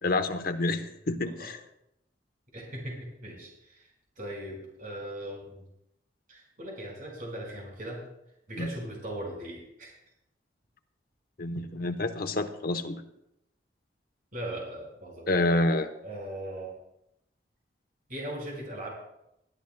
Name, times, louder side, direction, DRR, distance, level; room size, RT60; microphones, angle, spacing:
voice 1, 0.0-1.6 8.6-8.7 11.4-13.0 15.3-15.9, left 2 dB, 55° left, 8 dB, 0.9 m, -28 dB
voice 2, 2.5-3.9 4.2-5.6 6.3-8.0 8.5-9.9 14.3-15.4 16.0-16.7 18.1-18.9, right 1 dB, 50° right, -2 dB, 4.8 m, -39 dB
21.5 x 13.0 x 2.2 m, 0.82 s
head